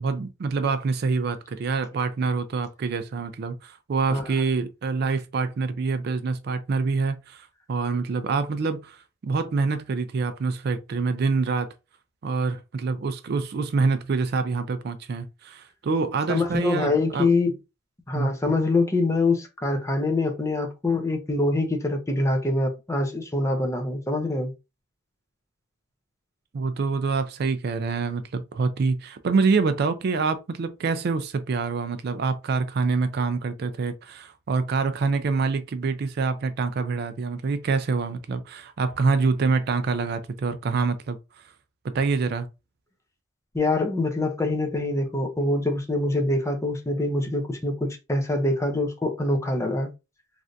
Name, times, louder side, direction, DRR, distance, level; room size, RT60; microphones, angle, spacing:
voice 1, 0.0-9.0 9.2-11.7 12.2-17.3 18.1-18.3 26.5-41.2 41.9-42.5, right 4 dB, 55° right, 0.4 m, -26 dB
voice 2, 16.3-17.5 18.1-24.5 43.5-49.9, left 2 dB, 15° left, 0.6 m, -24 dB
3.2 x 2.5 x 2.5 m
head